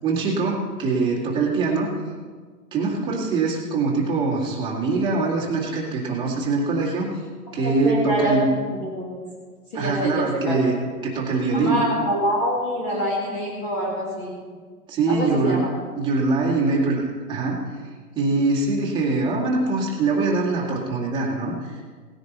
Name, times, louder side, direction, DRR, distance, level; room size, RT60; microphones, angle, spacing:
voice 1, 0.0-1.9 2.7-7.1 7.5-8.5 9.7-10.7 11.0-11.8 14.9-15.6 16.0-17.6 18.2-21.8, right 3 dB, 10° right, -4 dB, 1.8 m, -23 dB
voice 2, 7.6-8.4 8.7-9.1 9.7-10.6 11.5-14.4 15.1-15.7, equal, 25° left, -4 dB, 2.2 m, -25 dB
18.0 x 10.0 x 4.0 m, 1.5 s
hypercardioid pair, 160°, 47 cm